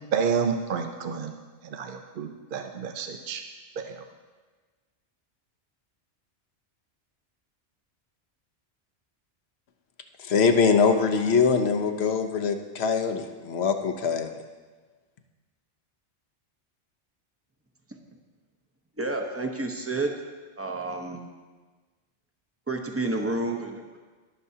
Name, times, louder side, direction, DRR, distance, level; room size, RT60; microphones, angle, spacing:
voice 1, 0.1-1.3 1.6-3.4 3.8-4.0, right 6 dB, 55° right, 5 dB, 0.7 m, -29 dB
voice 2, 10.2-14.4, left 5 dB, 65° left, 6 dB, 1.0 m, -23 dB
voice 3, 19.0-20.3 20.6-21.2 22.7-24.0, right 2 dB, 15° right, 3 dB, 0.7 m, -30 dB
20.0 x 6.8 x 2.8 m, 1.4 s
omnidirectional pair, 1.2 m